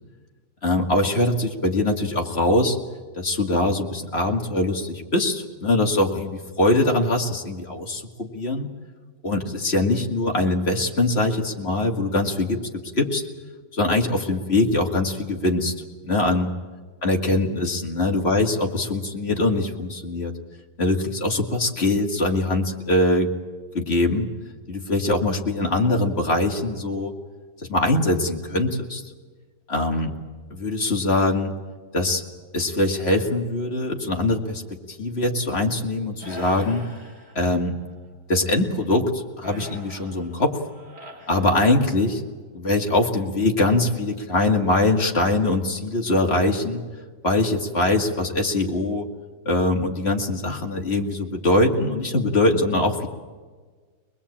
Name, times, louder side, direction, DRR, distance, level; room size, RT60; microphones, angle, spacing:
voice 1, 0.6-2.8 3.1-8.7 9.2-13.2 13.7-15.7 16.0-16.5 17.0-20.3 20.8-23.3 23.7-24.3 24.7-27.1 27.7-29.0 29.7-30.1 30.5-31.5 31.9-32.2 32.5-34.6 34.9-36.8 37.3-37.7 38.3-40.6 41.3-42.2 42.5-46.8 47.2-49.1 49.5-53.1, left 2 dB, 35° left, 1 dB, 2.5 m, -22 dB
sound 1, 36.2-37.8 39.4-42.1, left 2 dB, 35° right, 4.6 m, -41 dB
24.0 x 20.5 x 8.7 m, 1.4 s
omnidirectional pair, 1.8 m